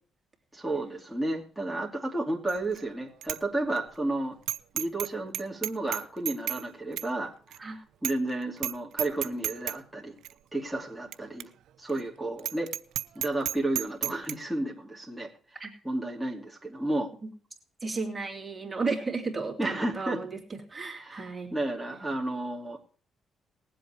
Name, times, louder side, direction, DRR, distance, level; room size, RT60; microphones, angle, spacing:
voice 1, 0.5-4.4 4.7-10.1 10.5-11.5 11.8-12.7 13.1-17.1 19.6-20.2 20.9-22.8, right 2 dB, ahead, -3 dB, 2.7 m, -32 dB
Bicycle bell, 2.5-2.8 3.2-3.4 3.8-3.9 4.5-5.1 5.3-6.6 7.0-7.1 7.5-7.6 8.0-8.3 8.6-8.7 9.0-9.8 10.2-10.3 11.1-11.2 11.4-11.5 11.9-12.0 12.4-14.3, right 12 dB, 80° right, 0.5 m, -32 dB
voice 2, 17.8-21.5, right 4 dB, 20° right, 0 dB, 2.9 m, -33 dB
20.0 x 7.8 x 4.4 m, 0.41 s
cardioid pair, 90°, 0 cm